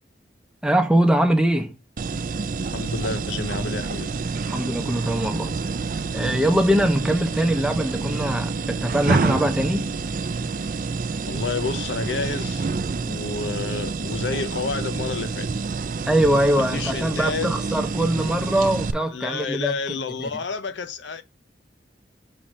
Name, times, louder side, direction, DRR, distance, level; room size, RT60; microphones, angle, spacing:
voice 1, 0.6-1.7 4.5-5.5 6.1-9.9 16.1-20.0, right 1 dB, 5° right, 0.7 m, -22 dB
sound 1, 2.0-18.9, right 4 dB, 45° right, 0.4 m, -28 dB
voice 2, 2.7-4.1 11.3-12.7 13.0-15.5 16.6-17.6 19.1-21.2, left 4 dB, 80° left, 0.7 m, -30 dB
5.7 x 3.3 x 5.0 m
head